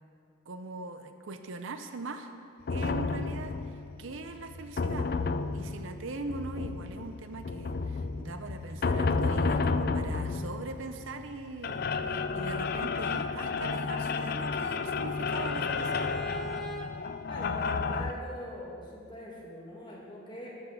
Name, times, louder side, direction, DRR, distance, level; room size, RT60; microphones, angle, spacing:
voice 1, 0.5-2.3 2.7-5.1 5.5-16.1, right 3 dB, 70° right, 8 dB, 0.6 m, -41 dB
sound 1, 2.7-18.1, left 4 dB, 45° left, 0.4 m, -31 dB
Bowed string instrument, 13.7-16.9, left 1 dB, ahead, 0.7 m, -43 dB
voice 2, 17.3-20.6, equal, 20° left, -4 dB, 2.0 m, -42 dB
12.5 x 6.2 x 7.1 m, 2.4 s
head